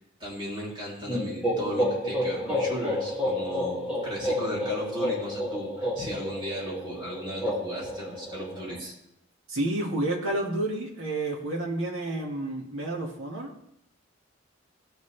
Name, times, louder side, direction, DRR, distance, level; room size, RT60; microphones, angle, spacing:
voice 1, 0.2-8.9, equal, 25° right, -5 dB, 3.5 m, -36 dB
Evil Laugh, 1.1-8.8, left 1 dB, 5° right, 2.6 m, -30 dB
voice 2, 9.5-13.5, right 2 dB, 80° right, -1 dB, 2.2 m, -30 dB
17.5 x 6.8 x 3.5 m, 0.77 s
head